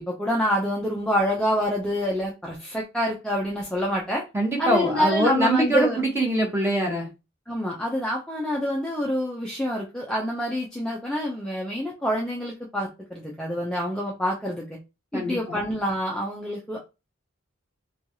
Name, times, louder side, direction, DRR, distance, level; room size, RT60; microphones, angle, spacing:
voice 1, 0.0-4.2 4.6-6.0 7.5-14.8 15.1-16.8, equal, 5° left, -3 dB, 0.4 m, -27 dB
voice 2, 4.3-7.1 15.1-15.6, right 1 dB, 10° right, 0 dB, 0.9 m, -23 dB
3.1 x 2.3 x 2.6 m, 0.27 s
head